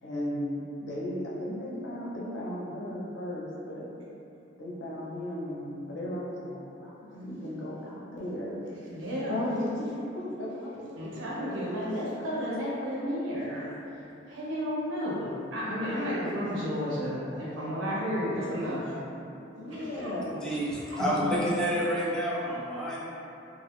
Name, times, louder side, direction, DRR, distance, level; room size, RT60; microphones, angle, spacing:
voice 1, 0.0-3.9 4.6-8.6 9.3-11.5 15.6-16.6 19.6-20.4, left 1 dB, 65° left, -5 dB, 0.5 m, -36 dB
voice 2, 8.9-9.4 11.0-13.6 14.3-18.9 19.7-20.1 20.9-21.3, equal, 85° right, -7 dB, 0.7 m, -32 dB
voice 3, 20.4-23.0, equal, 5° left, -7 dB, 0.3 m, -29 dB
2.3 x 2.0 x 2.9 m, 2.8 s
head